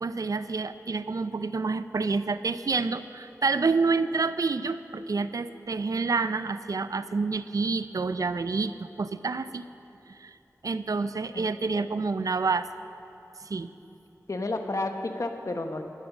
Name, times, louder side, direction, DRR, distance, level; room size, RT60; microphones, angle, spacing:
voice 1, 0.0-9.7 10.1-10.3 10.6-12.7 13.4-13.7, right 4 dB, 70° right, 12 dB, 0.5 m, -28 dB
voice 2, 14.3-15.8, left 2 dB, 60° left, 5 dB, 1.3 m, -31 dB
17.0 x 12.5 x 6.2 m, 2.9 s
wide cardioid pair, 65°, 6 cm